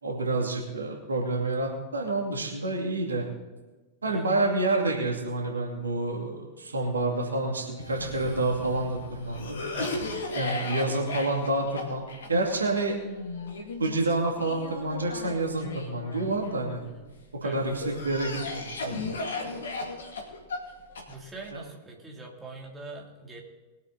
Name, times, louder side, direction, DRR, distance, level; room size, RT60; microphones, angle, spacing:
voice 1, 0.0-3.2 4.0-9.6 10.3-12.0 12.3-13.0 13.8-16.8 17.4-19.0 21.5-21.6, right 2 dB, 75° right, 0 dB, 2.6 m, -28 dB
Cough, 7.8-17.0 17.6-21.5, left 3 dB, 65° left, 2.3 m, -36 dB
voice 2, 21.1-23.4, right 3 dB, 15° right, -2 dB, 3.1 m, -42 dB
22.0 x 8.0 x 4.1 m, 1.2 s
figure-of-eight pair, 90°, 0 cm